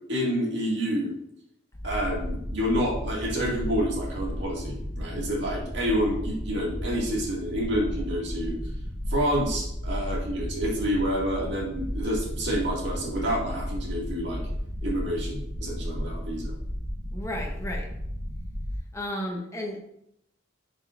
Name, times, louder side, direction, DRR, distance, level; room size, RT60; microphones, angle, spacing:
voice 1, 0.1-1.1 1.8-8.6 9.1-14.4 14.8-16.5, equal, 60° right, -3 dB, 2.0 m, -28 dB
sound 1, 1.7-18.8, equal, 50° left, 1.2 m, -34 dB
voice 2, 17.1-18.0 18.9-19.8, left 1 dB, 15° left, 0 dB, 1.0 m, -33 dB
10.5 x 5.2 x 2.5 m, 0.77 s
head